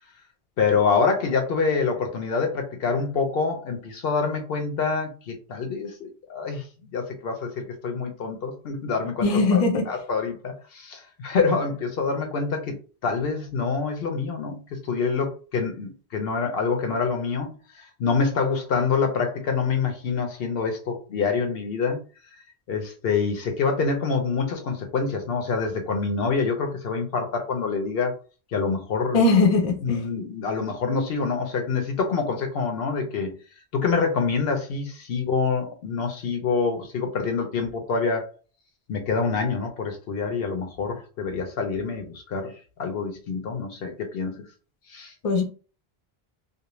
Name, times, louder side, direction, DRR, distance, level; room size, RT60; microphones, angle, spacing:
voice 1, 0.6-6.7 6.9-9.6 9.9-12.8 13.0-22.0 22.7-28.1 28.5-29.2 29.8-33.3 33.7-38.3 38.9-44.4 44.9-45.1, left 5 dB, 70° left, 0.8 m, -26 dB
voice 2, 9.2-9.9 29.1-30.0 45.2-45.4, left 3 dB, 45° left, 0.5 m, -20 dB
2.5 x 2.1 x 2.9 m
omnidirectional pair, 1.0 m